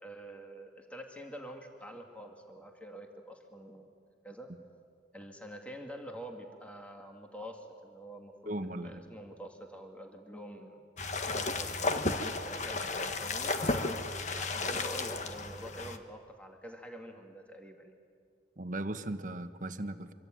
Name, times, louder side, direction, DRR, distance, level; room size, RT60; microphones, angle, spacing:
voice 1, 0.0-3.9 4.2-4.5 5.1-10.8 11.4-14.0 14.4-17.9, equal, 10° left, 2 dB, 2.1 m, -47 dB
voice 2, 8.4-9.0 18.6-20.1, right 1 dB, 50° right, 9 dB, 1.3 m, -37 dB
sound 1, 11.0-16.0, left 3 dB, 45° left, 1.5 m, -33 dB
25.5 x 24.0 x 9.2 m, 2.1 s
head